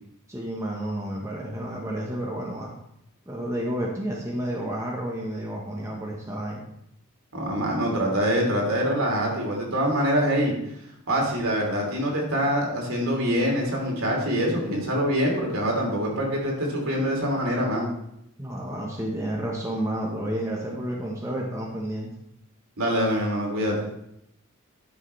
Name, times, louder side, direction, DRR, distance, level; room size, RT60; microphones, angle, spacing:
voice 1, 0.3-2.7 3.3-6.6 18.4-22.1, right 1 dB, 15° right, -2 dB, 1.0 m, -31 dB
voice 2, 7.3-10.5 11.1-17.9 22.8-23.8, equal, 70° right, -1 dB, 2.8 m, -24 dB
11.0 x 6.5 x 3.2 m, 0.78 s
head